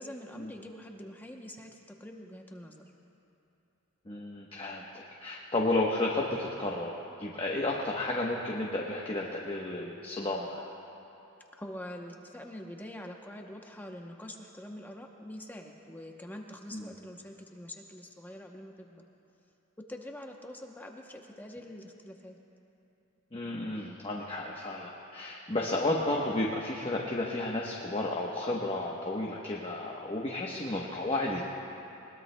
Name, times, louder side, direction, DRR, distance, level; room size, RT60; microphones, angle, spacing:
voice 1, 0.0-2.8 11.6-19.1 19.9-22.4, left 1 dB, 10° left, 1 dB, 0.8 m, -45 dB
voice 2, 4.1-10.7 16.7-16.9 23.3-31.4, left 2 dB, 25° left, -2 dB, 1.0 m, -32 dB
21.0 x 20.5 x 2.2 m, 2.8 s
head